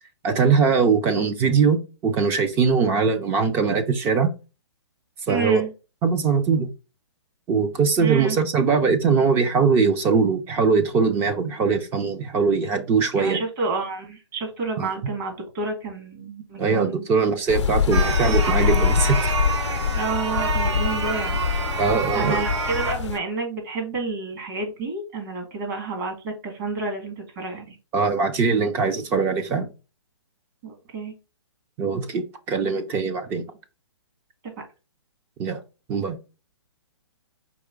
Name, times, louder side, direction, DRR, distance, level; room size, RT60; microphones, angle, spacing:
voice 1, 0.2-4.3 5.3-5.6 6.0-6.7 7.5-13.4 14.8-15.0 16.6-19.3 21.8-22.4 27.9-29.7 31.8-33.4 35.4-35.6 35.9-36.2, right 5 dB, 15° right, 7 dB, 0.4 m, -21 dB
voice 2, 5.3-5.7 8.0-8.4 13.1-17.0 19.9-21.4 21.7-21.8 22.1-27.8 30.6-31.1, right 3 dB, 45° right, 3 dB, 1.7 m, -29 dB
sound 1, 17.5-23.2, left 7 dB, 85° left, 0.5 m, -24 dB
sound 2, 17.9-22.9, right 5 dB, 75° right, 1.1 m, -28 dB
4.8 x 3.1 x 3.6 m, 0.30 s
hypercardioid pair, 155°, 15 cm